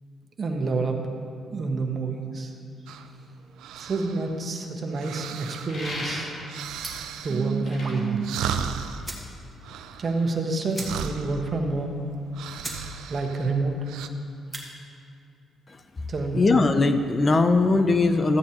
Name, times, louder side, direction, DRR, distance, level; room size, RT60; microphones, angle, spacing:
voice 1, 0.4-1.0 1.5-2.5 3.8-6.3 7.2-8.3 10.0-12.0 13.1-13.7 16.1-16.4, right 3 dB, 40° right, 2 dB, 1.2 m, -28 dB
sound 1, 2.9-14.1, right 8 dB, 90° right, 0.4 m, -36 dB
sound 2, 5.7-6.7 7.4-9.2, left 1 dB, 60° left, 2.4 m, -36 dB
sound 3, 6.8-7.2 8.5-8.6 9.0-9.4 9.7-9.8 10.0-10.2 10.7-11.3 11.6-11.7 12.2-12.3 12.6-12.9 13.2-13.6 14.3-14.7, right 1 dB, 5° right, 1.8 m, -38 dB
voice 2, 16.3-18.4, left 3 dB, 30° left, 8 dB, 0.6 m, -20 dB
14.0 x 9.1 x 2.9 m, 2.5 s
cardioid pair, 90°, 0 cm